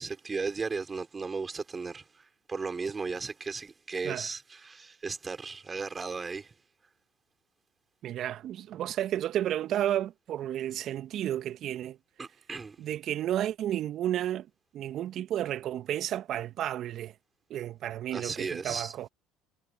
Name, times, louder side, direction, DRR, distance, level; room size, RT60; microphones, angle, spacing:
voice 1, 0.0-6.5 12.2-12.8 18.1-18.9, right 4 dB, 25° right, 5.5 m, -36 dB
voice 2, 8.0-12.0 12.8-14.5 14.7-17.1 17.5-19.1, right 12 dB, 55° right, 2.0 m, -32 dB
hypercardioid pair, 70°, 0 cm